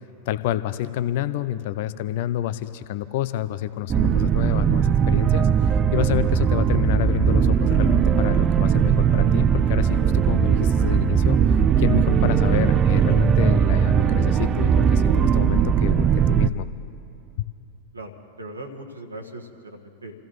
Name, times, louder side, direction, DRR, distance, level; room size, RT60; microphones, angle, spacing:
voice 1, 0.3-16.7, left 13 dB, 50° left, 13 dB, 0.5 m, -28 dB
sound 1, 3.9-16.5, right 8 dB, 25° right, 0.5 m, -19 dB
voice 2, 17.9-20.1, right 1 dB, 80° right, 2 dB, 1.4 m, -39 dB
28.0 x 15.5 x 3.1 m, 2.6 s
figure-of-eight pair, 90°, 0 cm